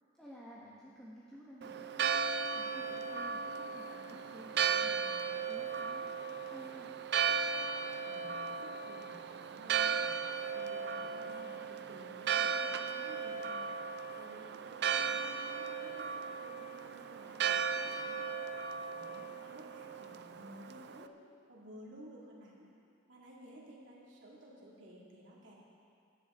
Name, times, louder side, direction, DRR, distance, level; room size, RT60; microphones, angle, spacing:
voice 1, 0.2-2.1 2.5-6.9, equal, 5° left, -8 dB, 1.4 m, -53 dB
Church bell, 1.6-21.0, right 6 dB, 60° right, 0.4 m, -36 dB
voice 2, 8.0-10.2 10.5-13.7 14.1-18.3 18.9-21.1 21.5-22.7 23.1-25.5, equal, 80° right, -5 dB, 2.5 m, -54 dB
17.5 x 11.0 x 3.8 m, 2.3 s
head